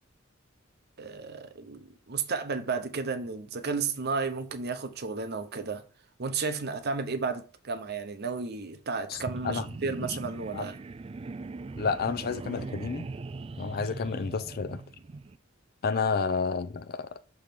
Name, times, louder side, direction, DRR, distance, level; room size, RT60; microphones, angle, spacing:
voice 1, 1.0-5.8 6.2-10.8, right 4 dB, 55° right, 0.8 m, -33 dB
sound 1, 9.1-15.4, right 3 dB, 30° right, 0.3 m, -40 dB
voice 2, 11.8-13.1 13.6-14.8 15.8-17.2, left 5 dB, 50° left, 0.5 m, -30 dB
6.3 x 3.6 x 5.8 m
head